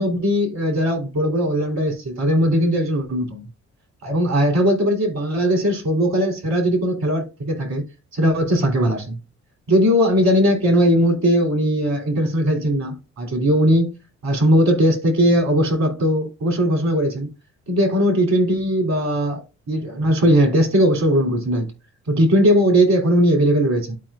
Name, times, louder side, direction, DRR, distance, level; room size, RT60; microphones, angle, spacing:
voice 1, 0.0-3.5 4.0-7.8 8.1-9.2 9.7-13.9 14.2-17.3 17.7-19.4 19.7-21.7 22.1-24.0, equal, 65° right, 3.1 m, -19 dB
12.0 x 4.7 x 2.4 m
cardioid pair, 90°, 30 cm